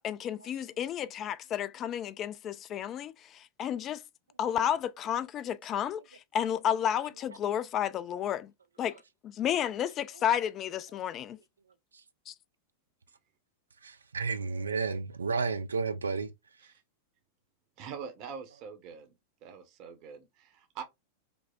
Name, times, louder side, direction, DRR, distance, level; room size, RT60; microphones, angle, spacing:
voice 1, 0.0-4.0 4.4-8.5 8.8-9.0 9.2-11.4 12.3-12.4, left 9 dB, 35° left, 0.3 m, -32 dB
voice 2, 13.8-16.3, right 4 dB, 80° right, 0.3 m, -32 dB
voice 3, 17.8-19.1 19.4-20.8, right 6 dB, 45° right, 0.8 m, -44 dB
5.2 x 2.0 x 2.4 m
figure-of-eight pair, 90°, 0 cm